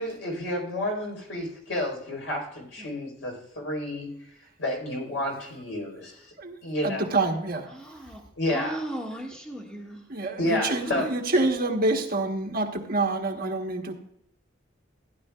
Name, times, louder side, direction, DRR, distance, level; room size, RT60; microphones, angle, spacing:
voice 1, 0.0-4.3 4.6-6.3 6.6-7.1 8.4-8.8 10.4-11.1, left 1 dB, 75° left, 4.1 m, -30 dB
voice 2, 6.8-7.7 10.1-13.9, right 2 dB, 50° right, 1.2 m, -27 dB
voice 3, 7.7-8.2 8.5-10.0 10.8-11.1, right 1 dB, 5° left, 1.7 m, -37 dB
15.0 x 10.5 x 2.3 m
head